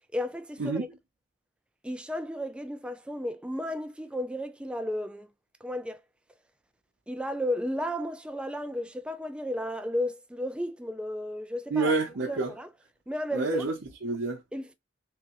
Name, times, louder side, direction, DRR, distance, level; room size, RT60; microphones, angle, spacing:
voice 1, 0.1-0.9 1.8-5.3 5.6-6.0 7.1-11.9 12.3-12.7 13.1-13.6 14.5-14.7, equal, 5° right, 0.4 m, -33 dB
voice 2, 11.7-12.5 13.3-14.4, right 3 dB, 75° right, 0.7 m, -28 dB
3.3 x 3.3 x 3.0 m
head